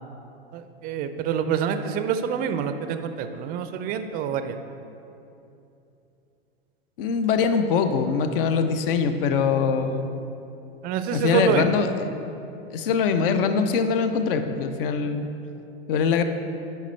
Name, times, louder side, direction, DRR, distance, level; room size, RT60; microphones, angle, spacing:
voice 1, 0.5-4.6 10.8-11.8, right 7 dB, 30° right, 9 dB, 0.4 m, -26 dB
voice 2, 7.0-10.1 11.1-11.9 12.7-15.3 15.9-16.2, left 6 dB, 60° left, 8 dB, 0.6 m, -23 dB
8.2 x 5.4 x 3.2 m, 2.8 s
hypercardioid pair, 105°, 31 cm